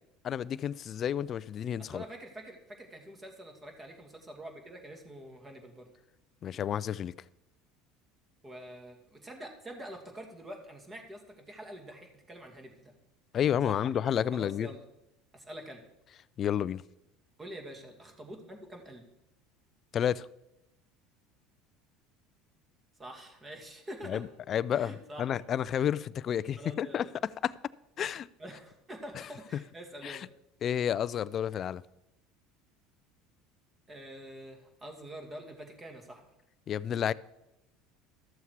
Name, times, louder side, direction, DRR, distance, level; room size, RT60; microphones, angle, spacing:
voice 1, 0.2-2.0 6.4-7.1 13.3-14.7 16.4-16.8 19.9-20.3 24.1-27.5 28.0-28.3 29.2-29.3 30.0-30.2 30.6-31.8 36.7-37.1, left 9 dB, 45° left, 0.3 m, -31 dB
voice 2, 1.8-5.9 8.4-12.9 13.6-13.8 14.3-14.8 15.3-15.8 17.4-19.0 23.0-24.2 24.7-25.3 26.6-27.1 28.4-30.3 33.9-36.3, right 1 dB, 20° right, 2.2 m, -46 dB
13.0 x 7.1 x 4.7 m
supercardioid pair, 95°, 0 cm